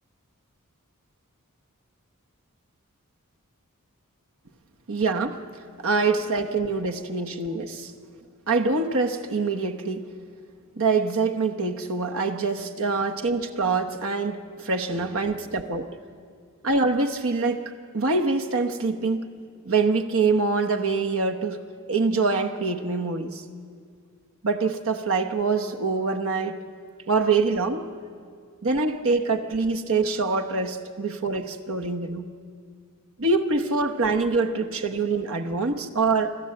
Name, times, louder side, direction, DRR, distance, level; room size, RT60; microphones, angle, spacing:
voice 1, 4.9-5.4 5.8-7.9 8.5-10.1 10.8-15.9 16.6-19.3 19.6-21.6 21.9-23.4 24.4-26.6 27.1-27.9 28.6-32.3 33.2-36.4, right 4 dB, 65° right, 4 dB, 1.0 m, -25 dB
27.0 x 13.0 x 7.7 m, 2.2 s
head